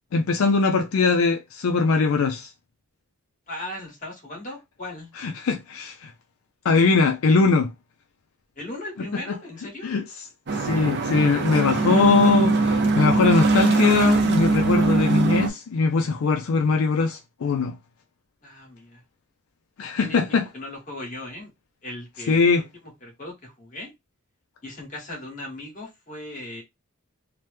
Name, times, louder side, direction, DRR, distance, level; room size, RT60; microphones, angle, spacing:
voice 1, 0.1-2.5 5.2-6.1 6.6-7.7 9.0-9.4 9.8-10.0 10.5-17.7 19.8-20.5 22.3-22.6, left 4 dB, 75° left, 0.4 m, -21 dB
voice 2, 3.5-5.1 8.6-9.9 18.4-19.0 19.8-21.5 21.8-22.6 23.0-23.9 24.6-26.6, left 1 dB, 35° left, 1.4 m, -38 dB
sound 1, 10.5-15.5, right 3 dB, 50° right, 0.5 m, -21 dB
2.9 x 2.1 x 3.3 m
head